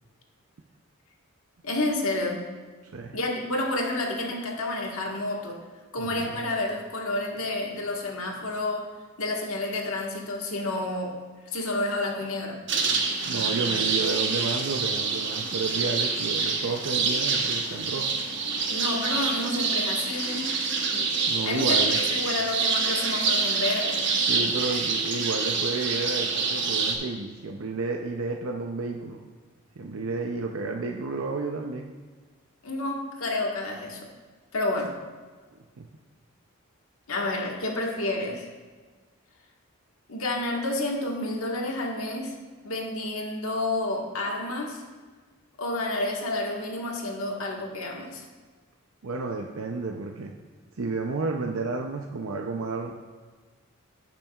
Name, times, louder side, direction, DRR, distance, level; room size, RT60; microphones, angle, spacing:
voice 1, 1.6-2.4 3.1-5.6 5.9-8.8 9.2-11.1 11.5-12.6 18.7-20.5 21.4-24.1 32.6-34.1 34.5-34.9 37.1-38.4 40.1-42.3 42.6-44.8 45.6-48.2, left 2 dB, 80° left, 0 dB, 1.5 m, -30 dB
voice 2, 6.0-6.4 13.2-18.1 21.3-22.0 24.2-29.2 29.8-31.9 35.8-35.9 49.0-50.3 50.8-53.0, right 3 dB, 75° right, 2 dB, 0.6 m, -31 dB
sound 1, 12.7-27.0, right 4 dB, 55° right, 1.0 m, -26 dB
16.5 x 5.9 x 2.4 m, 1.4 s
head